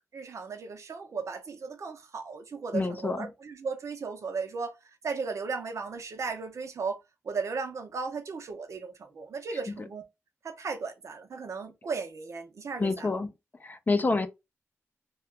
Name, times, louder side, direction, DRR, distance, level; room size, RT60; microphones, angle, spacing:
voice 1, 0.1-4.7 5.0-10.1 10.4-13.1, right 4 dB, 70° right, 0.6 m, -36 dB
voice 2, 2.7-3.3 12.8-13.3 13.6-14.3, left 3 dB, 35° left, 0.5 m, -27 dB
2.9 x 2.2 x 3.2 m
wide cardioid pair, 95°, 5 cm